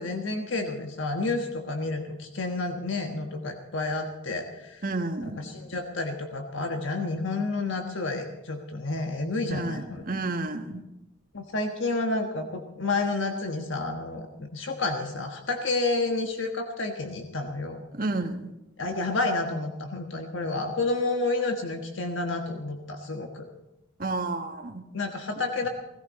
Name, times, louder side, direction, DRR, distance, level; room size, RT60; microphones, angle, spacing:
voice 1, 0.0-4.8 5.2-10.0 11.3-17.8 18.8-23.5 24.9-25.7, left 3 dB, 70° left, 3 dB, 1.4 m, -30 dB
voice 2, 4.8-5.4 9.5-10.8 17.9-18.5 24.0-24.8, right 2 dB, 45° right, 5 dB, 1.4 m, -31 dB
17.5 x 16.0 x 4.2 m, 0.95 s
head